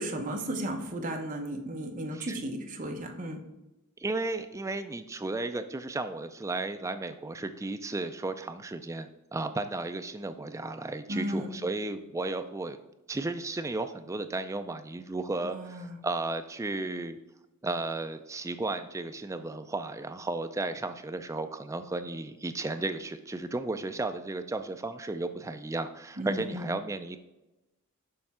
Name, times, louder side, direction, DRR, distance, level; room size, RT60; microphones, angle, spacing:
voice 1, 0.0-3.4 11.1-11.5 15.4-16.0 26.2-26.7, right 1 dB, 35° right, 3 dB, 0.9 m, -34 dB
voice 2, 4.0-12.8 13.1-17.2 17.6-27.2, right 2 dB, 15° right, 8 dB, 0.3 m, -34 dB
6.5 x 3.5 x 4.3 m, 0.99 s
head